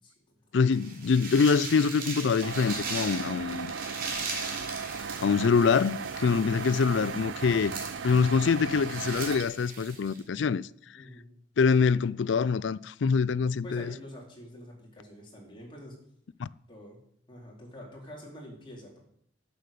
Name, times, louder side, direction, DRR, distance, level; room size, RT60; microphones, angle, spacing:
voice 1, 0.0-0.4 6.3-6.5 10.9-11.3 13.6-16.0 16.7-17.0 17.3-19.0, equal, 25° left, 4.2 m, -46 dB
voice 2, 0.5-3.7 5.2-7.7 8.0-10.6 11.6-13.9 16.4-16.5, left 5 dB, 70° left, 0.4 m, -25 dB
sound 1, 0.7-10.2, right 4 dB, 50° right, 3.4 m, -39 dB
sound 2, 2.4-9.4, right 5 dB, 75° right, 0.5 m, -37 dB
11.5 x 8.3 x 6.8 m
head